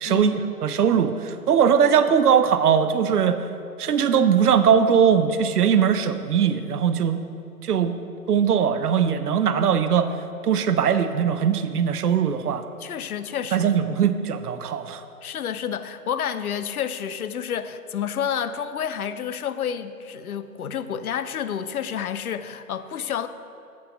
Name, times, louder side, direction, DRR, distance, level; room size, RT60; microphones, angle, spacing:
voice 1, 0.0-3.4 3.8-7.2 7.6-8.0 8.3-10.1 10.4-12.6 13.5-15.0, right 7 dB, 75° right, 10 dB, 0.6 m, -20 dB
voice 2, 12.8-13.7 15.2-23.3, left 8 dB, 70° left, 12 dB, 0.5 m, -29 dB
7.5 x 3.8 x 5.8 m, 2.6 s
hypercardioid pair, 165°, 46 cm